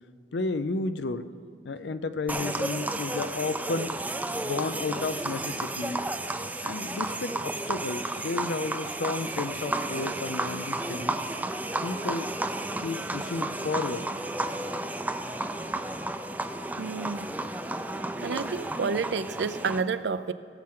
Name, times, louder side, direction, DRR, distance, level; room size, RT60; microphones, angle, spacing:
voice 1, 0.3-1.3 1.6-3.9 4.4-6.0 6.6-11.1 11.8-12.4 12.8-14.1, left 3 dB, 75° left, 12 dB, 0.5 m, -32 dB
sound 1, 2.3-19.8, right 2 dB, 10° right, 0.4 m, -32 dB
voice 2, 16.8-17.3 18.2-20.3, right 5 dB, 75° right, 14 dB, 0.5 m, -30 dB
18.0 x 7.6 x 3.7 m, 2.3 s
head